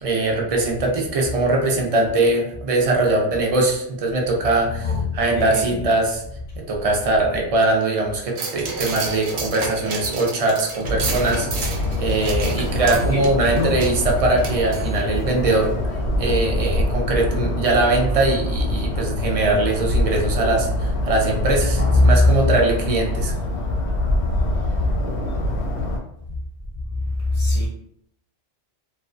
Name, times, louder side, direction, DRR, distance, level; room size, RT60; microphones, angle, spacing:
voice 1, 0.0-6.2 6.6-15.7 16.2-23.3, right 2 dB, 50° right, 0 dB, 0.4 m, -21 dB
voice 2, 4.8-5.9 12.6-13.8 21.8-22.3 24.2-24.3 27.3-27.7, left 2 dB, 45° left, -4 dB, 0.5 m, -21 dB
sound 1, 8.4-15.2 15.6-15.7, right 3 dB, 85° right, 0.8 m, -31 dB
sound 2, 10.8-26.0, left 1 dB, 85° left, 0.8 m, -24 dB
2.4 x 2.2 x 2.4 m, 0.74 s
omnidirectional pair, 1.1 m